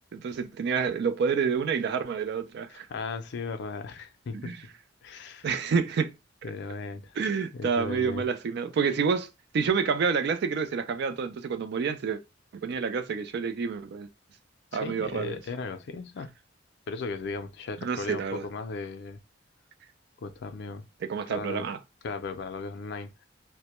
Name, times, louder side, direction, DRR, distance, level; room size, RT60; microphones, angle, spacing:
voice 1, 0.1-2.9 4.3-4.6 5.4-6.1 7.2-12.2 12.5-14.1 14.7-15.4 17.8-18.4 21.0-21.8, right 5 dB, 60° right, 0.4 m, -28 dB
voice 2, 2.7-4.5 5.0-5.5 6.4-7.2 7.5-8.2 14.7-16.3 16.9-19.2 20.2-20.9 21.3-21.7 22.0-23.3, left 4 dB, 65° left, 0.4 m, -36 dB
2.1 x 2.1 x 2.9 m
head